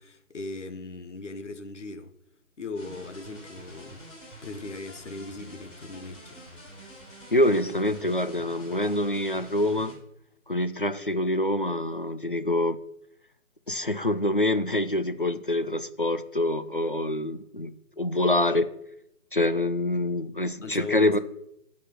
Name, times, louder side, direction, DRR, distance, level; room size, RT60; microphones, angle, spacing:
voice 1, 0.0-2.1 2.6-4.0 4.4-6.4 20.6-21.2, left 3 dB, 55° left, 1.1 m, -38 dB
sound 1, 2.7-9.9, equal, 20° left, 3.7 m, -47 dB
voice 2, 7.3-9.9 10.5-12.8 13.7-18.7 19.3-21.2, left 1 dB, 40° left, 0.4 m, -26 dB
9.0 x 4.9 x 7.6 m
figure-of-eight pair, 150°, 42 cm